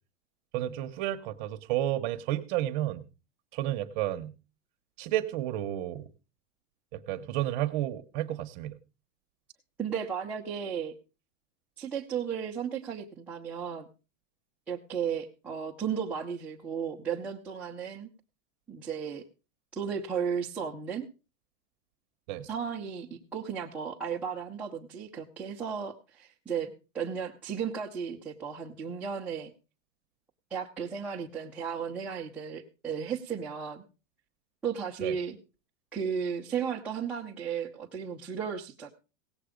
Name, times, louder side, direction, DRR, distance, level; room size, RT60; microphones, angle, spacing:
voice 1, 0.5-3.1 3.5-4.3 5.0-6.1 6.9-8.8 22.3-22.5 35.0-35.1, right 13 dB, 40° right, 8 dB, 0.9 m, -31 dB
voice 2, 9.8-10.9 11.8-13.9 14.7-18.1 18.7-19.2 19.7-21.1 22.4-29.5 30.5-33.8 34.6-35.4 35.9-38.9, right 7 dB, 5° right, -5 dB, 0.5 m, -34 dB
17.5 x 7.9 x 5.0 m, 0.33 s
supercardioid pair, 165°, 39 cm